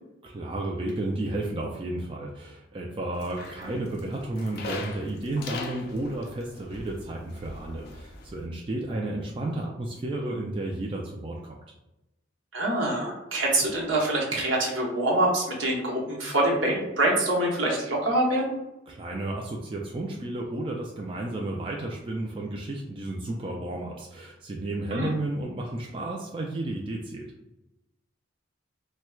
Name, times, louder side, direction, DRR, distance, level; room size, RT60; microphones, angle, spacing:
voice 1, 0.2-11.6 14.3-14.4 18.9-27.3, right 2 dB, 25° right, -1 dB, 0.3 m, -32 dB
sound 1, 3.1-8.5, left 3 dB, 55° left, 0.4 m, -41 dB
voice 2, 12.5-18.6 24.9-25.1, right 1 dB, 70° right, -2 dB, 0.9 m, -25 dB
4.3 x 2.2 x 2.3 m, 0.92 s
head